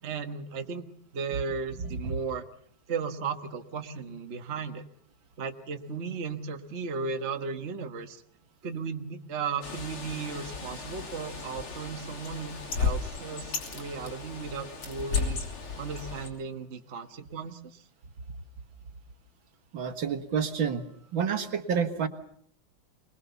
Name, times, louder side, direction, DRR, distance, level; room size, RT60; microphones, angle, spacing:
voice 1, 0.0-0.9 1.1-2.5 2.9-4.8 5.4-8.2 8.6-15.4 15.8-17.8, right 5 dB, 35° right, 6 dB, 1.4 m, -35 dB
Bird, 9.6-16.3, left 5 dB, 90° left, 4.0 m, -34 dB
voice 2, 19.7-20.8 21.1-22.1, right 7 dB, 65° right, 7 dB, 2.3 m, -29 dB
25.0 x 21.0 x 7.0 m, 0.66 s
omnidirectional pair, 2.3 m